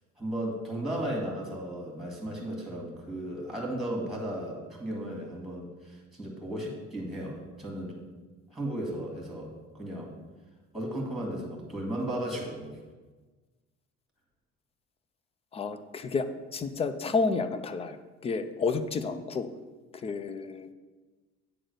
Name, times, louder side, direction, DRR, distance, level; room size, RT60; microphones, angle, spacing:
voice 1, 0.2-8.0 8.5-10.1 10.7-12.8, right 1 dB, ahead, -1 dB, 1.9 m, -35 dB
voice 2, 15.5-16.3 16.5-18.0 18.2-19.5 19.9-20.7, left 4 dB, 20° left, 11 dB, 0.4 m, -30 dB
8.9 x 3.9 x 6.5 m, 1.3 s
cardioid pair, 155°, 29 cm